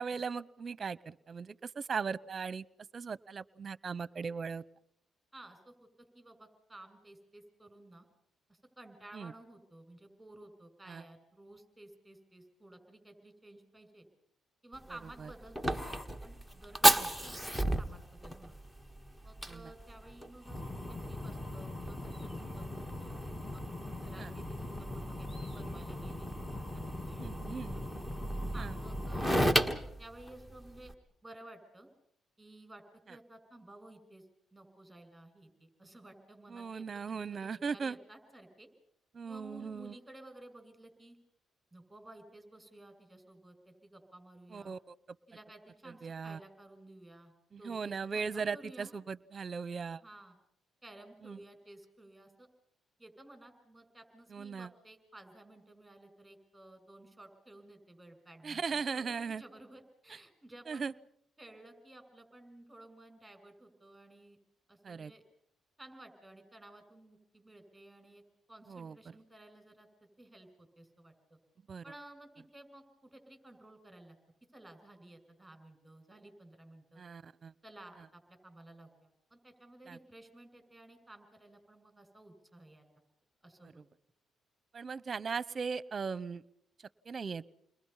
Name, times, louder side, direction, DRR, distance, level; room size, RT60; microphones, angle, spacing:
voice 1, 0.0-2.6 2.9-4.6 9.1-9.3 10.9-11.0 15.2-15.3 17.0-17.1 19.5-19.7 24.2-24.3 27.2-27.8 28.6-28.7 36.5-38.0 39.1-40.0 44.5-44.9 45.9-46.4 47.5-50.0 51.2-51.4 54.3-54.7 58.4-59.4 60.7-60.9 64.8-65.1 68.7-68.9 71.7-71.8 77.0-77.5 79.9-80.0 83.6-83.7 84.7-86.4 87.1-87.5, right 5 dB, 40° right, 19 dB, 0.8 m, -38 dB
voice 2, 5.3-8.1 8.5-14.1 14.6-18.6 19.2-23.6 24.0-27.4 27.7-27.8 28.5-29.6 30.0-30.9 31.2-31.9 32.4-34.2 34.5-38.7 39.3-41.2 41.7-44.7 45.3-49.0 50.0-50.4 50.8-52.5 53.0-61.0 61.4-64.4 64.7-65.2 65.8-68.2 68.5-69.9 70.2-71.4 71.8-74.2 74.5-77.0 77.6-82.9 83.4-83.8, right 1 dB, 5° right, 7 dB, 6.8 m, -54 dB
Fire, 14.7-30.9, equal, 10° left, 1.6 m, -34 dB
29.5 x 22.0 x 5.6 m, 0.70 s
cardioid pair, 90°, 0 cm